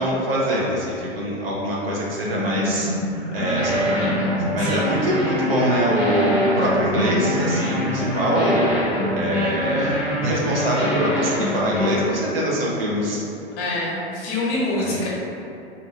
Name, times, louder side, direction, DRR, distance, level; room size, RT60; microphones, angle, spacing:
voice 1, 0.0-8.7 9.1-13.2 14.7-14.9, equal, 60° right, -5 dB, 0.9 m, -23 dB
sound 1, 2.1-10.0, equal, 90° right, 0.8 m, -30 dB
sound 2, 3.3-12.0, equal, 5° right, 0.8 m, -25 dB
voice 2, 4.6-4.9 13.5-15.1, left 2 dB, 30° left, -6 dB, 0.9 m, -26 dB
2.8 x 2.7 x 4.2 m, 2.7 s
figure-of-eight pair, 100°, 33 cm